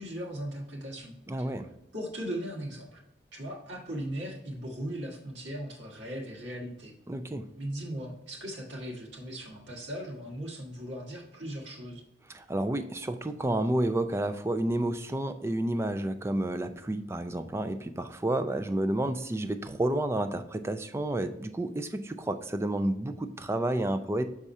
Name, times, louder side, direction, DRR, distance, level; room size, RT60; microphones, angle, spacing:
voice 1, 0.0-1.5 1.9-3.0 3.3-6.9 7.6-12.0, equal, 70° right, -1 dB, 1.7 m, -38 dB
voice 2, 1.3-1.7 7.1-7.5 12.3-24.3, right 1 dB, 15° right, 10 dB, 0.3 m, -30 dB
6.6 x 3.6 x 4.2 m, 0.83 s
head